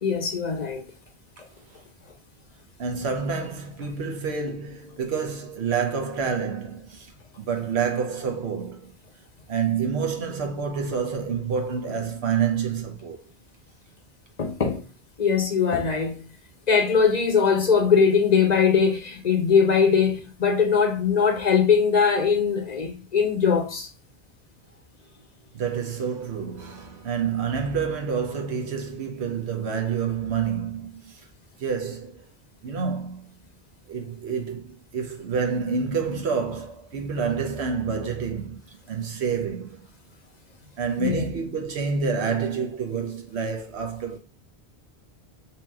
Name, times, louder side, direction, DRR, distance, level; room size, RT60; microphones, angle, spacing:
voice 1, 0.0-0.9 14.4-14.8 15.2-16.2 16.7-23.9 41.0-41.2, left 6 dB, 45° left, 0.7 m, -21 dB
voice 2, 2.8-7.1 7.4-8.9 9.5-13.2 25.5-31.3 31.6-32.2 32.6-33.3 33.9-38.6 38.9-39.8 40.8-44.2, right 6 dB, 80° right, 1.0 m, -28 dB
2.8 x 2.8 x 3.3 m
omnidirectional pair, 1.1 m